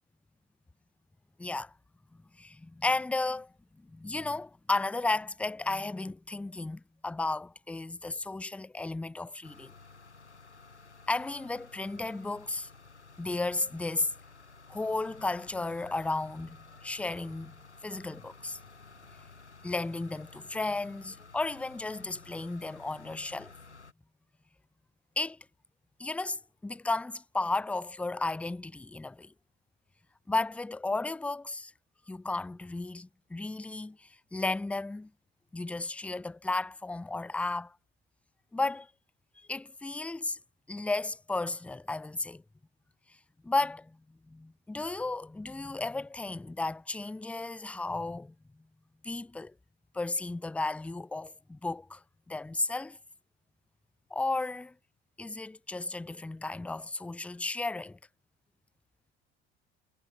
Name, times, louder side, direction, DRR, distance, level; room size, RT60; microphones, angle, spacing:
voice 1, 1.4-1.7 2.4-9.7 11.1-12.7 13.2-14.1 14.7-17.6 17.8-18.6 19.6-23.5 25.2-25.4 26.0-29.3 30.3-31.7 32.1-35.1 35.5-37.7 38.5-38.9 39.4-40.4 40.7-42.4 43.4-48.3 49.0-49.5 49.9-53.0 54.1-54.7 55.2-58.0, left 2 dB, 5° left, 0.4 m, -34 dB
sound 1, 9.4-23.9, left 4 dB, 85° left, 2.7 m, -54 dB
figure-of-eight pair, 60°, 33 cm